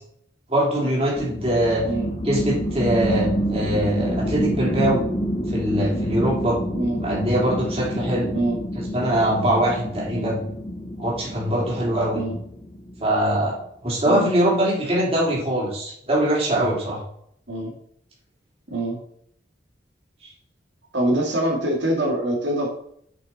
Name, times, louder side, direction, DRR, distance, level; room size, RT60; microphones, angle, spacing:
voice 1, 0.5-1.9 2.2-5.0 5.5-6.6 7.0-8.3 8.9-10.4 11.0-12.2 13.0-13.5 13.8-17.0, right 1 dB, 30° right, -4 dB, 3.1 m, -22 dB
sound 1, 1.2-13.2, equal, 35° left, 1.6 m, -28 dB
voice 2, 20.9-22.7, right 1 dB, 80° right, -1 dB, 2.3 m, -24 dB
7.9 x 5.8 x 4.3 m, 0.67 s
head